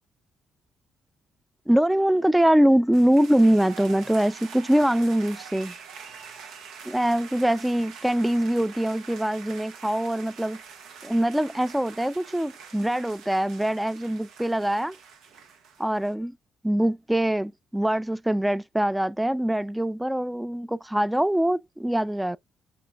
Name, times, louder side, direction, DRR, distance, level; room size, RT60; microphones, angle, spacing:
voice 1, 1.7-5.7 6.9-10.6 11.0-15.0 15.8-16.4 16.6-22.4, right 1 dB, 5° right, 0.4 m, -23 dB
sound 1, 2.9-16.1, right 6 dB, 85° right, 1.2 m, -45 dB
6.0 x 3.0 x 2.3 m
cardioid pair, 90°, 0 cm